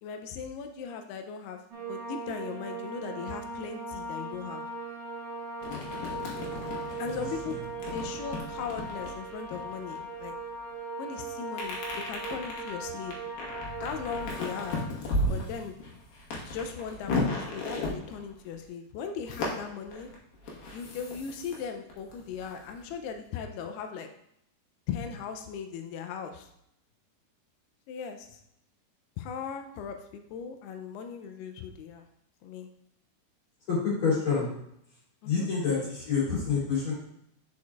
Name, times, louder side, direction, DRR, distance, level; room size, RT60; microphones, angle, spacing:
voice 1, 0.0-4.7 7.0-10.3 11.0-13.2 13.8-14.8 15.3-15.8 16.5-20.1 20.7-24.1 24.9-26.5 27.9-28.4 29.2-32.1 32.4-32.7 35.2-35.5, left 6 dB, 85° left, 6 dB, 2.3 m, -38 dB
sound 1, 1.7-14.9, right 2 dB, 65° right, 2.4 m, -39 dB
sound 2, 5.6-10.5 11.5-18.6 19.3-21.6 21.9-23.2, left 2 dB, 65° left, 2.8 m, -35 dB
voice 2, 7.0-7.6 33.7-34.5 35.2-36.9, left 5 dB, 35° left, -7 dB, 2.9 m, -28 dB
8.5 x 6.3 x 2.4 m, 0.75 s
omnidirectional pair, 5.1 m